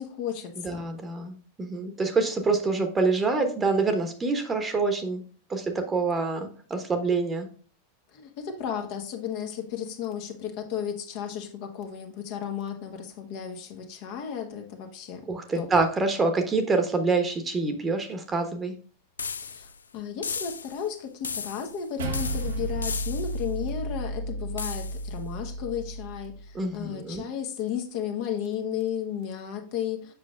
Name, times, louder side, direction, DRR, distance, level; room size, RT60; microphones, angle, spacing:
voice 1, 0.0-0.8 8.1-15.2 15.5-15.7 19.4-19.7 19.9-30.1, left 8 dB, 45° left, 3 dB, 1.3 m, -34 dB
voice 2, 0.6-5.2 5.5-7.5 15.3-18.7 26.5-27.2, right 3 dB, 15° right, 7 dB, 1.2 m, -26 dB
sound 1, 19.2-19.8 20.2-20.9 21.2-21.8 22.1-23.5 24.6-25.1, left 6 dB, 70° left, 0.4 m, -35 dB
sound 2, 22.0-26.5, right 1 dB, 65° right, 1.0 m, -33 dB
7.6 x 6.1 x 2.5 m, 0.42 s
figure-of-eight pair, 90°, 0 cm